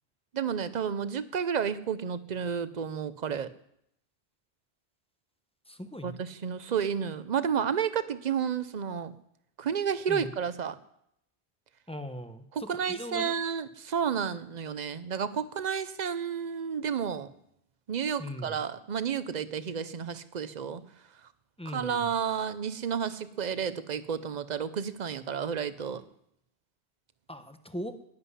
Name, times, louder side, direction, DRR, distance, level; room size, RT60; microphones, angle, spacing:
voice 1, 0.3-3.5 6.0-9.1 9.6-10.8 12.5-17.3 17.9-20.8 21.7-26.0, right 7 dB, 45° right, 14 dB, 0.7 m, -31 dB
voice 2, 5.7-6.2 10.1-10.3 11.9-13.3 18.2-18.6 21.6-22.1 27.3-28.0, equal, 5° left, 8 dB, 0.8 m, -39 dB
11.0 x 7.9 x 9.7 m, 0.76 s
omnidirectional pair, 1.1 m